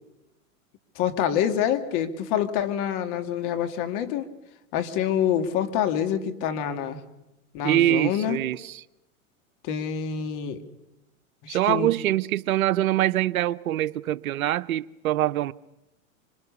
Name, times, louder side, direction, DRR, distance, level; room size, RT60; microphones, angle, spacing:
voice 1, 1.0-4.3 4.7-7.0 7.5-8.4 9.6-10.6 11.4-11.9, left 9 dB, 45° left, 7 dB, 2.6 m, -26 dB
voice 2, 7.6-8.8 11.5-15.5, right 13 dB, 75° right, 16 dB, 0.8 m, -24 dB
25.5 x 25.0 x 7.0 m, 0.93 s
hypercardioid pair, 110°, 42 cm